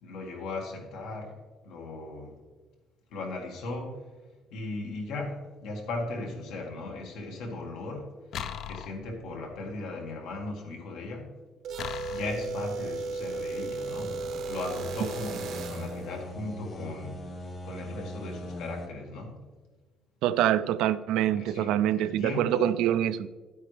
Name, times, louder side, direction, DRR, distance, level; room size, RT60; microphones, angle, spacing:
voice 1, 0.0-1.3 1.6-2.3 3.1-3.9 4.5-5.4 5.6-8.0 8.7-11.3 12.1-14.1 14.5-17.2 17.6-19.4 21.3-22.7, left 2 dB, 90° left, 1.9 m, -37 dB
sound 1, 8.3-9.5 11.8-12.6, left 9 dB, 55° left, 0.4 m, -38 dB
sound 2, 11.6-16.1, right 3 dB, 55° right, 0.7 m, -35 dB
sound 3, 13.9-18.9, left 1 dB, 35° left, 1.1 m, -41 dB
voice 2, 20.2-23.3, right 11 dB, 90° right, 0.4 m, -25 dB
11.0 x 8.8 x 3.3 m
cardioid pair, 160°, 0 cm